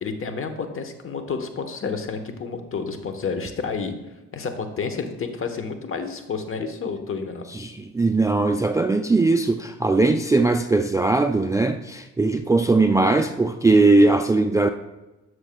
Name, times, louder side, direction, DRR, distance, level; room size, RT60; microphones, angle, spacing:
voice 1, 0.0-3.9 4.3-7.4, left 5 dB, 45° left, 7 dB, 1.0 m, -30 dB
voice 2, 7.5-14.7, right 3 dB, 10° right, 7 dB, 0.3 m, -19 dB
12.0 x 6.4 x 2.2 m, 1.0 s
cardioid pair, 90°, 30 cm